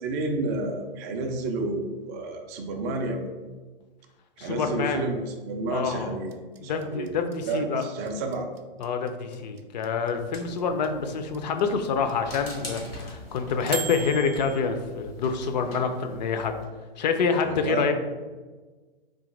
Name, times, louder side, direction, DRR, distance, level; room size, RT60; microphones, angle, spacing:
voice 1, 0.0-3.3 4.4-6.4 6.6-7.2 7.5-8.5 17.4-17.9, right 2 dB, 20° right, 3 dB, 0.3 m, -30 dB
voice 2, 4.4-5.1 5.7-6.2 6.6-7.8 8.8-16.6 17.0-17.9, left 5 dB, 45° left, 7 dB, 0.5 m, -27 dB
sound 1, 6.3-14.6, right 7 dB, 85° right, 0.5 m, -37 dB
sound 2, 10.1-16.6, left 1 dB, 80° left, 1.3 m, -43 dB
3.8 x 2.7 x 3.8 m, 1.3 s
figure-of-eight pair, 115°, 30 cm